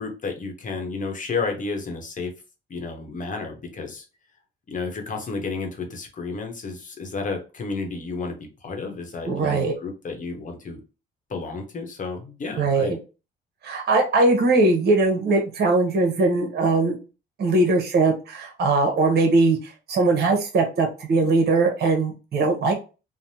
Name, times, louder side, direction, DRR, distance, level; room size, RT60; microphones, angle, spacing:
voice 1, 0.0-2.3 2.7-4.0 4.7-10.8 11.3-13.0, left 4 dB, 40° left, 4 dB, 0.9 m, -31 dB
voice 2, 9.3-9.7 12.6-13.0 13.6-17.0 17.4-22.7, right 3 dB, 55° right, 3 dB, 0.9 m, -20 dB
3.3 x 2.1 x 2.7 m, 0.32 s
cardioid pair, 90°, 20 cm